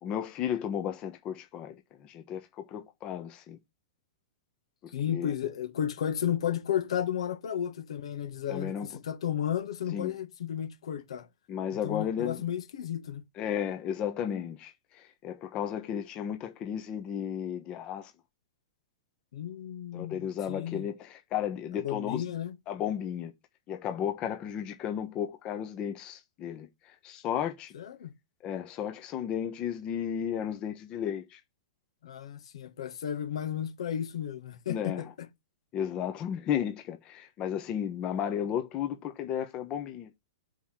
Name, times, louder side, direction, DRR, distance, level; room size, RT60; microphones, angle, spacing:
voice 1, 0.0-3.6 4.8-5.3 8.5-8.9 9.9-10.1 11.5-12.4 13.4-18.1 19.9-22.2 22.7-23.3 23.7-27.7 28.4-31.4 34.7-35.1 35.7-40.1, left 9 dB, 30° left, 1.1 m, -34 dB
voice 2, 4.9-11.3 11.8-13.2 19.3-20.9 21.8-22.5 27.7-28.1 32.0-35.1, left 9 dB, 75° left, 1.5 m, -33 dB
5.5 x 4.9 x 5.9 m
hypercardioid pair, 135°, 3 cm